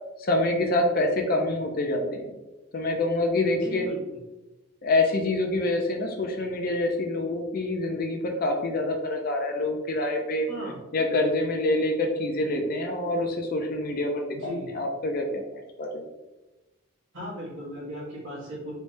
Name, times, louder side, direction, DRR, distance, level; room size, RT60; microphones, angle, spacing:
voice 1, 0.2-2.3 2.7-3.9 4.8-10.5 10.9-14.3 14.7-16.0, left 2 dB, 45° left, 3 dB, 0.4 m, -26 dB
voice 2, 3.5-4.0 10.5-10.8 14.3-14.7 17.1-18.7, equal, 65° right, -6 dB, 1.3 m, -36 dB
3.3 x 3.1 x 2.6 m, 1.0 s
head